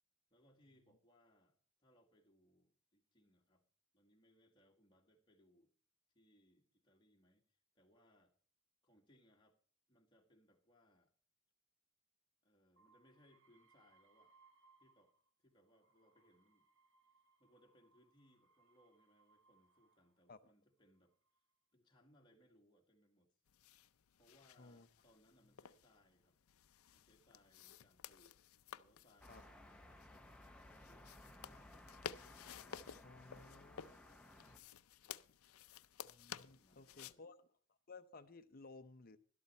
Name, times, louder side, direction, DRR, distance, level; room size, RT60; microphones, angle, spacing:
voice 1, 0.3-3.6 3.9-5.7 6.1-8.3 8.8-9.6 9.9-11.1 12.4-14.3 14.8-15.1 15.4-16.7 17.4-21.1 21.7-23.4 24.2-26.4 26.9-28.4 28.8-32.0 35.0-35.3 36.6-37.3, equal, 20° left, 1 dB, 1.9 m, -72 dB
sound 1, 12.8-15.3 15.6-20.2 21.0-21.5, right 3 dB, 60° right, 1.3 m, -73 dB
sound 2, 23.5-37.1, left 8 dB, 75° left, 0.5 m, -55 dB
sound 3, 29.2-34.6, left 1 dB, 5° left, 0.8 m, -59 dB
voice 2, 33.0-34.7 36.0-37.5 37.9-39.2, left 3 dB, 40° left, 11 dB, 0.7 m, -58 dB
12.5 x 12.0 x 4.4 m, 0.43 s
head